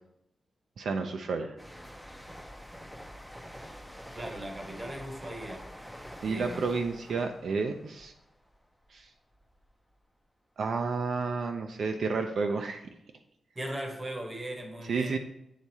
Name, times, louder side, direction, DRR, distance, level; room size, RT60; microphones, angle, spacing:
voice 1, 0.8-1.5 6.2-8.1 8.9-9.1 10.6-12.8 14.9-15.2, right 4 dB, 65° right, 5 dB, 0.4 m, -31 dB
sound 1, 1.6-9.0 9.3-9.7, equal, ahead, 0.4 m, -46 dB
voice 2, 4.1-5.7 6.2-6.7 13.6-15.2, right 1 dB, 20° right, 3 dB, 0.9 m, -38 dB
8.2 x 3.5 x 4.2 m, 0.81 s
wide cardioid pair, 160°, 0 cm